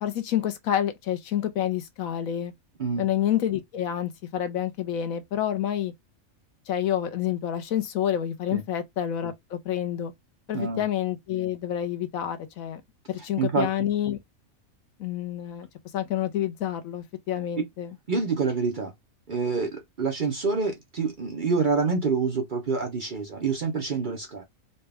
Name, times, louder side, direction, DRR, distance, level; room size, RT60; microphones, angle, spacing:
voice 1, 0.0-2.5 3.0-5.9 6.7-10.1 10.5-12.8 13.1-14.2 15.0-15.7 15.9-18.0, left 10 dB, 75° left, 1.1 m, -28 dB
voice 2, 13.4-13.7 18.1-18.9 19.3-24.4, right 4 dB, 45° right, 0.7 m, -27 dB
4.0 x 2.3 x 3.4 m
omnidirectional pair, 1.5 m